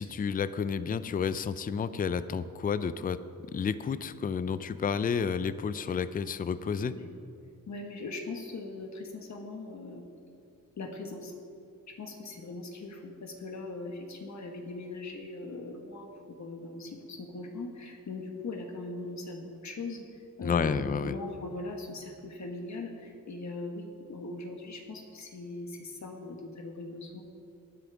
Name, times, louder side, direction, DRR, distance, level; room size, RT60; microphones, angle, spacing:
voice 1, 0.0-3.2 3.5-6.9 20.4-21.2, left 6 dB, 25° left, 14 dB, 0.4 m, -31 dB
voice 2, 7.7-10.0 10.8-11.3 11.9-27.2, left 2 dB, 55° left, 3 dB, 1.5 m, -40 dB
18.0 x 9.8 x 3.5 m, 2.5 s
wide cardioid pair, 120°, 34 cm